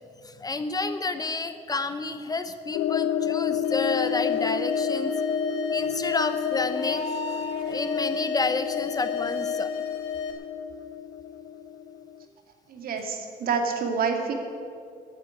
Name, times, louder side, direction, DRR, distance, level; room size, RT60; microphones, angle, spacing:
voice 1, 0.2-5.1 5.7-9.7, left 3 dB, 20° left, 10 dB, 0.8 m, -30 dB
sound 1, 2.7-12.2, left 9 dB, 65° left, 0.7 m, -31 dB
sound 2, 3.6-10.3, left 3 dB, 90° left, 2.3 m, -32 dB
voice 2, 12.7-14.3, right 5 dB, 60° right, 4 dB, 2.4 m, -27 dB
14.0 x 9.1 x 9.7 m, 2.4 s
cardioid pair, 110°, 17 cm